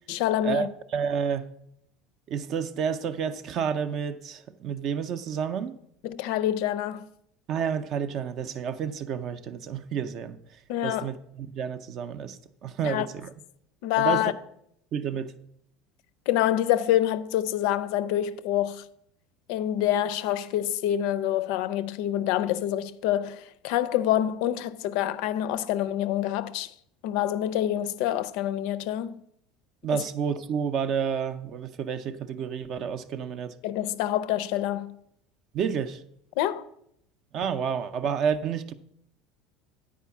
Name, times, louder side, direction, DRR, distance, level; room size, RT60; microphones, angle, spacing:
voice 1, 0.1-0.7 6.0-7.1 10.7-11.1 12.8-13.1 13.8-14.3 16.3-18.8 19.5-26.7 27.0-29.2 33.6-35.0 36.4-36.7, left 12 dB, 60° left, 0.4 m, -26 dB
voice 2, 0.9-1.5 2.3-5.8 7.5-10.4 10.8-13.3 14.0-14.2 14.9-15.3 29.8-33.6 35.5-36.0 37.3-38.7, right 7 dB, 35° right, 0.5 m, -30 dB
10.0 x 4.7 x 7.0 m
cardioid pair, 170°, 0 cm